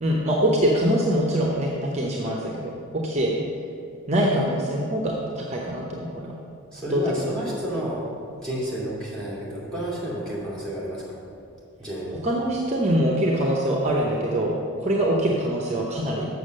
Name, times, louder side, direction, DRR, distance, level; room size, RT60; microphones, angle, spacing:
voice 1, 0.0-3.3 4.1-6.3 6.9-7.3 12.2-16.3, equal, 30° right, -1 dB, 0.7 m, -24 dB
voice 2, 6.7-8.1 8.4-11.2 11.8-12.2, right 1 dB, 5° left, -6 dB, 2.3 m, -31 dB
7.1 x 6.5 x 6.4 m, 2.6 s
head